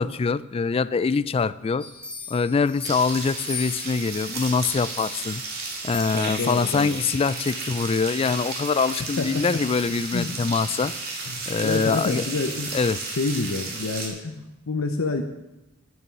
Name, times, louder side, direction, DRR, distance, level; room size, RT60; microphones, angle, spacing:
voice 1, 0.0-1.9 2.3-5.4 5.8-10.9 11.5-12.2 12.7-13.0, left 5 dB, 30° left, 17 dB, 0.3 m, -24 dB
sound 1, 1.8-4.4 4.9-7.3 7.8-7.9, left 3 dB, 5° left, 1.9 m, -40 dB
sound 2, 2.8-14.1, right 3 dB, 50° right, 2.7 m, -33 dB
voice 2, 6.1-6.9 9.2-9.4 10.1-10.8 11.3-12.9 13.2-15.2, left 3 dB, 85° left, 5 dB, 0.8 m, -28 dB
9.4 x 9.3 x 6.0 m, 0.99 s
head